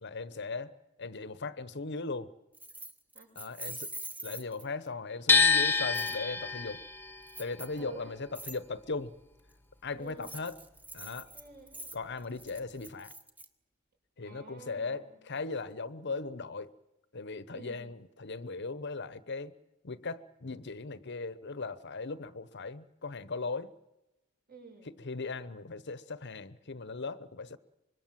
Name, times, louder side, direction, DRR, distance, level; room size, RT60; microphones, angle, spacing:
voice 1, 0.0-2.3 3.3-3.9 4.2-6.8 7.4-9.1 9.8-10.6 10.9-11.3 11.9-13.1 14.2-16.7 17.1-19.5 19.8-23.7 24.8-27.6, left 3 dB, 60° left, 1.0 m, -38 dB
Keys jangling, 2.5-4.9 5.9-6.2 7.3-7.8 8.3-8.6 10.1-13.5, right 1 dB, 10° right, 1.5 m, -44 dB
sound 1, 5.3-11.3 11.6-12.9, left 5 dB, 10° left, 1.3 m, -29 dB
voice 2, 7.8-8.1 10.0-10.3 11.3-12.2 14.2-15.2 17.5-17.9 24.5-24.9, right 4 dB, 50° right, 7.2 m, -50 dB
25.5 x 22.0 x 7.6 m
head